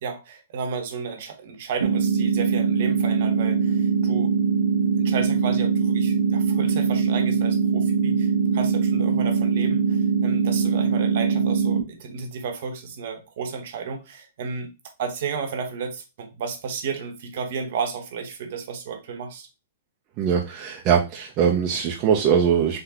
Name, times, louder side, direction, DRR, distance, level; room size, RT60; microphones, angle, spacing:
voice 1, 0.0-4.3 5.0-14.7 15.0-19.5, right 5 dB, 55° right, 1.0 m, -32 dB
sound 1, 1.8-11.8, right 5 dB, 80° right, 0.7 m, -22 dB
voice 2, 20.2-22.8, right 7 dB, 35° right, 0.6 m, -21 dB
3.7 x 3.3 x 2.9 m
hypercardioid pair, 115°, 0 cm